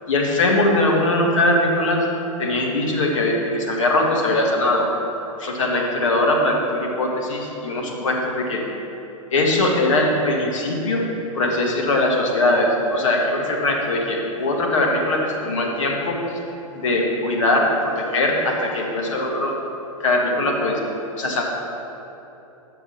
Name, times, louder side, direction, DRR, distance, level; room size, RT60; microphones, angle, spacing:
voice 1, 0.1-2.0 2.4-4.9 5.4-8.6 9.3-11.0 11.3-16.2 16.7-19.5 20.0-20.8 21.1-21.4, left 2 dB, 65° left, 0 dB, 1.5 m, -21 dB
9.1 x 6.1 x 4.3 m, 3.0 s
figure-of-eight pair, 100°, 18 cm